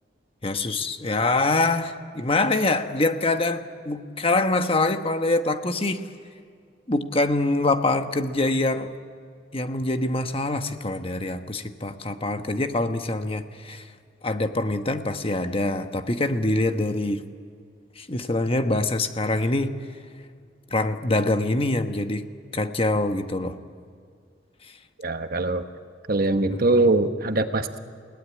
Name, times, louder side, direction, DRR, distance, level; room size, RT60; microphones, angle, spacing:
voice 1, 0.4-6.0 6.9-8.9 9.5-13.8 14.2-17.2 18.0-19.7 20.7-22.3 22.5-23.6 24.6-24.7 26.5-26.6, left 2 dB, 30° left, 7 dB, 1.2 m, -24 dB
voice 2, 25.0-25.7 26.1-27.8, right 2 dB, 50° right, 8 dB, 1.2 m, -22 dB
29.5 x 18.0 x 9.7 m, 2.2 s
head